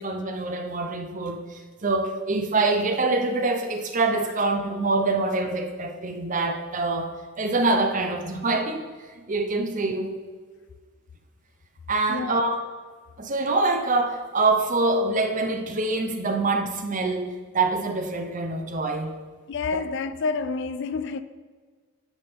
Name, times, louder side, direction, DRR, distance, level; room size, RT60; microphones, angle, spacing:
voice 1, 0.0-7.1 7.4-8.9 9.3-10.1 11.9-12.6 13.2-19.1, right 3 dB, 40° right, 0.7 m, -25 dB
voice 2, 12.1-12.5 19.5-21.2, left 4 dB, 55° left, 0.3 m, -29 dB
9.6 x 3.9 x 5.2 m
head